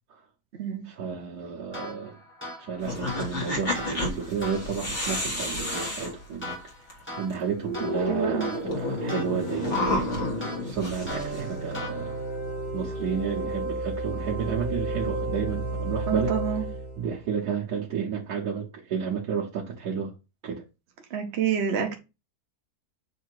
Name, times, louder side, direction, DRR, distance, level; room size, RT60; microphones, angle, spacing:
voice 1, 0.8-2.2 2.6-6.6 6.9-12.1 12.7-16.4 17.0-20.1 20.4-20.6, right 6 dB, 75° right, 1.6 m, -32 dB
sound 1, 1.7-12.4, left 1 dB, 5° left, 1.7 m, -41 dB
sound 2, 2.8-6.9 7.3-7.4 7.6-11.7, left 1 dB, 45° left, 2.0 m, -30 dB
voice 2, 8.1-8.5 16.1-16.6 21.1-22.0, right 8 dB, 50° right, 1.0 m, -28 dB
sound 3, 11.1-17.2, right 2 dB, 70° left, 3.8 m, -32 dB
7.1 x 2.8 x 4.6 m
omnidirectional pair, 1.7 m